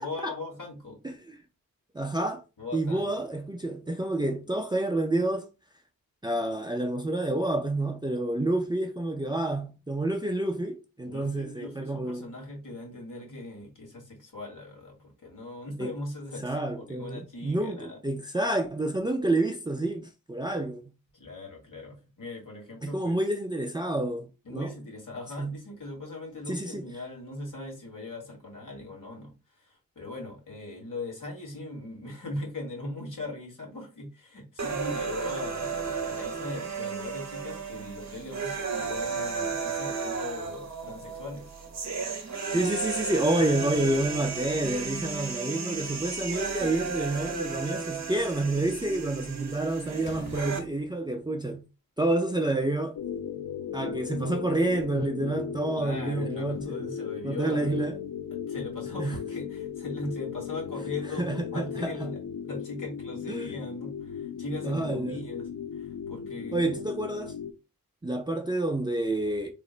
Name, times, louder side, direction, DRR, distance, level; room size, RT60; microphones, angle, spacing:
voice 1, 0.0-1.0 2.6-3.2 11.0-18.0 21.1-23.2 24.4-41.5 55.7-57.9 58.3-62.2 62.5-66.6, left 2 dB, 60° left, 1.7 m, -40 dB
voice 2, 1.9-2.4 2.7-5.5 6.2-12.2 15.8-15.9 16.4-20.9 22.8-24.8 25.4-25.6 26.5-26.8 42.5-51.7 52.0-53.0 53.7-58.0 59.0-59.2 61.2-62.1 63.3-63.5 64.6-65.3 66.5-67.3 68.0-69.5, right 2 dB, 15° right, 0.4 m, -29 dB
sound 1, 34.6-50.6, right 5 dB, 50° right, 0.8 m, -34 dB
Slam, 46.3-47.2 49.3-49.5 50.0-51.2, left 3 dB, 35° left, 0.6 m, -49 dB
sound 2, 53.0-67.5, left 8 dB, 85° left, 0.6 m, -36 dB
4.1 x 3.0 x 2.4 m
wide cardioid pair, 120°, 35 cm